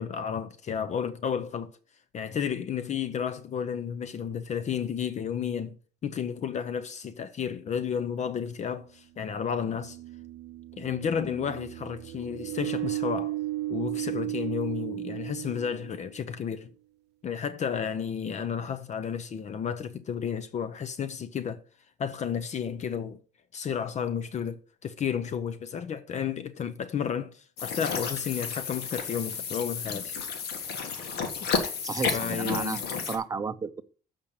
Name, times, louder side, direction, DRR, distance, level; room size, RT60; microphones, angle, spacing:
voice 1, 0.0-1.7 2.1-5.7 6.0-10.0 10.8-13.4 13.7-16.7 17.2-21.6 22.0-23.2 23.5-30.1 31.4-31.5 32.1-32.8, left 7 dB, 45° left, 0.7 m, -32 dB
sound 1, 7.8-7.9 9.3-16.2, right 16 dB, 75° right, 0.6 m, -35 dB
sound 2, 27.6-33.2, left 5 dB, 75° left, 1.7 m, -32 dB
voice 2, 31.8-33.8, right 5 dB, 20° right, 0.7 m, -33 dB
7.2 x 5.2 x 7.0 m
cardioid pair, 110°, 17 cm